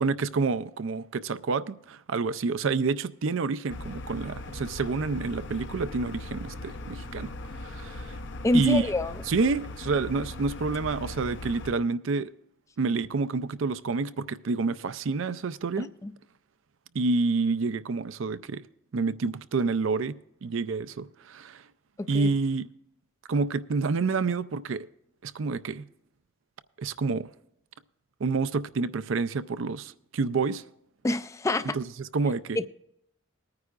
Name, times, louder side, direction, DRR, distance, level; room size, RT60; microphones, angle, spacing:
voice 1, 0.0-7.3 7.6-8.2 8.5-8.8 9.3-12.3 12.8-15.9 16.9-18.6 18.9-20.1 20.4-21.6 22.1-22.7 23.3-24.9 25.2-25.8 26.8-27.3 28.2-30.6 31.7-32.6, right 4 dB, 70° right, 0.5 m, -28 dB
sound 1, 3.7-11.7, left 2 dB, 60° left, 0.7 m, -39 dB
voice 2, 8.4-9.1 15.8-16.1 22.0-22.3 31.0-31.8 32.6-32.7, left 1 dB, 15° left, 0.3 m, -27 dB
20.5 x 9.6 x 2.5 m
head